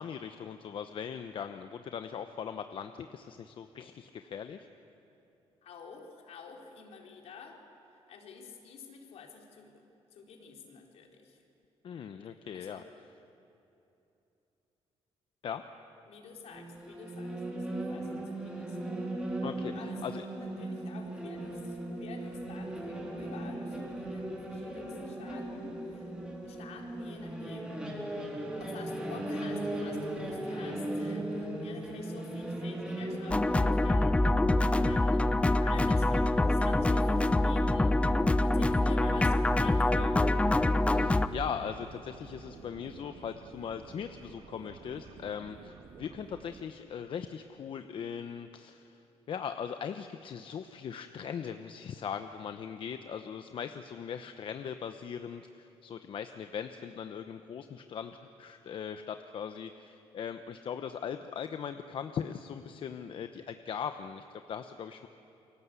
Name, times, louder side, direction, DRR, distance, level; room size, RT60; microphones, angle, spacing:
voice 1, 0.0-4.7 11.8-12.8 15.4-15.6 19.4-19.7 20.0-20.2 40.9-49.0 49.3-65.1, left 7 dB, 50° left, 8 dB, 0.9 m, -39 dB
voice 2, 5.6-7.6 7.9-9.8 10.1-11.4 12.5-12.8 16.1-18.9 19.7-26.1 26.4-34.2 34.5-38.0 38.4-40.2, left 4 dB, 70° left, 2 dB, 4.0 m, -50 dB
sound 1, 16.5-33.6, right 1 dB, 10° right, 3.8 m, -37 dB
sound 2, 33.3-41.3, left 2 dB, 10° left, 0.7 m, -25 dB
sound 3, 39.4-46.6, right 5 dB, 50° right, 1.9 m, -51 dB
29.0 x 23.5 x 8.3 m, 2.9 s
cardioid pair, 145°, 11 cm